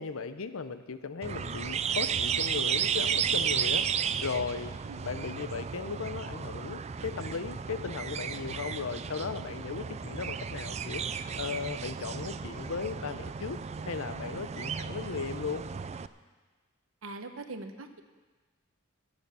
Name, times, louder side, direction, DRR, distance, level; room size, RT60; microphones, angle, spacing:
voice 1, 0.0-3.9 4.2-11.0 11.4-15.6, left 5 dB, 80° left, 11 dB, 0.7 m, -36 dB
sound 1, 1.2-16.1, right 7 dB, 30° right, 0.4 m, -33 dB
voice 2, 17.0-18.0, right 2 dB, 75° right, 7 dB, 1.0 m, -41 dB
16.5 x 6.9 x 6.9 m, 1.3 s
head